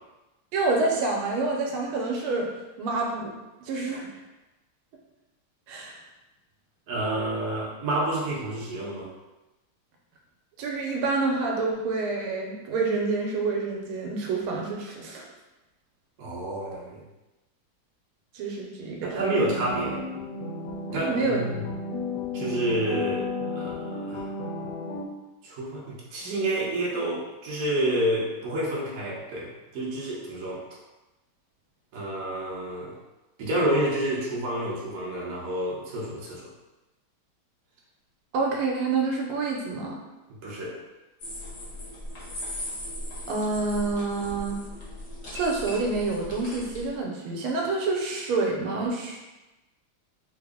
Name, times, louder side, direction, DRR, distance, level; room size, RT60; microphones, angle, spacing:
voice 1, 0.5-2.5 2.8-3.3 3.7-4.1 5.7-6.0 10.6-15.2 18.3-19.5 21.1-21.4 38.3-40.0 43.3-44.6 45.3-49.2, right 3 dB, 80° right, -1 dB, 1.5 m, -27 dB
voice 2, 6.9-9.1 16.2-17.0 19.0-20.0 20.9-21.7 22.3-24.3 25.4-30.6 31.9-32.9 33.4-36.5 40.3-40.8, right 1 dB, 60° right, -4 dB, 1.0 m, -29 dB
sound 1, 19.2-25.1, left 3 dB, 80° left, 1.4 m, -33 dB
sound 2, 41.2-46.9, left 1 dB, 55° left, 0.7 m, -38 dB
3.7 x 2.0 x 3.5 m, 1.1 s
omnidirectional pair, 2.4 m